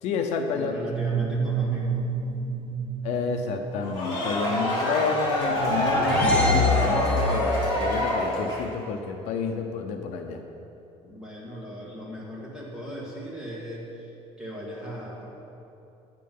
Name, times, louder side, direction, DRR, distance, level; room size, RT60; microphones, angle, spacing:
voice 1, 0.0-0.8 3.0-10.4, left 5 dB, 65° left, 4 dB, 0.8 m, -30 dB
voice 2, 0.5-2.0 11.0-15.3, equal, 5° right, -6 dB, 2.2 m, -38 dB
sound 1, 0.8-4.5, right 5 dB, 50° right, 0.8 m, -30 dB
sound 2, 3.8-8.8, equal, 35° left, 3.0 m, -26 dB
sound 3, 5.3-7.6, left 3 dB, 10° left, 1.4 m, -26 dB
10.5 x 9.0 x 5.5 m, 2.8 s
cardioid pair, 180°, 12 cm